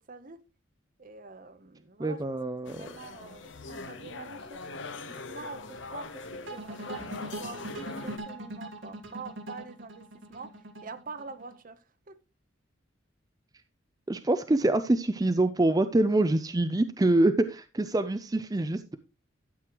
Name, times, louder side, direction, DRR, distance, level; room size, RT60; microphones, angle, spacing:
voice 1, 0.1-0.4 1.0-2.2 2.7-4.6 5.1-12.2, right 4 dB, 45° right, 0.8 m, -45 dB
voice 2, 2.0-2.9 14.1-18.9, right 2 dB, 20° right, 0.4 m, -25 dB
sound 1, 2.7-8.2, left 3 dB, 70° left, 0.9 m, -42 dB
sound 2, 6.5-11.6, right 1 dB, 80° right, 1.9 m, -41 dB
12.0 x 7.7 x 3.0 m
head